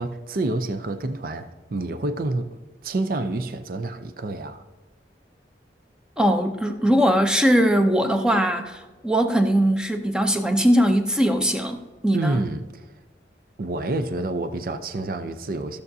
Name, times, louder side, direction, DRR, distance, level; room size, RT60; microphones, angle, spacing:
voice 1, 0.0-2.6 2.8-4.6 12.1-12.9 13.6-15.8, right 2 dB, 50° right, 0.5 m, -28 dB
voice 2, 6.2-12.4, equal, 5° right, 0.6 m, -20 dB
16.0 x 6.7 x 2.7 m
head